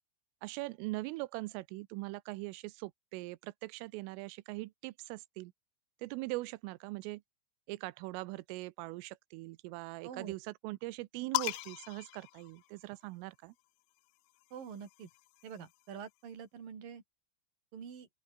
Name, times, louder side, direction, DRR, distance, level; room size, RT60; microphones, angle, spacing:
voice 1, 0.4-5.5 6.0-7.2 7.7-13.5, right 21 dB, 85° right, 3.3 m, -41 dB
voice 2, 10.0-10.3 14.5-15.1 15.4-17.0 17.7-18.1, right 7 dB, 45° right, 5.3 m, -46 dB
sound 1, 11.3-13.1 14.3-15.9, left 23 dB, 85° left, 2.7 m, -40 dB
open air
omnidirectional pair, 5.9 m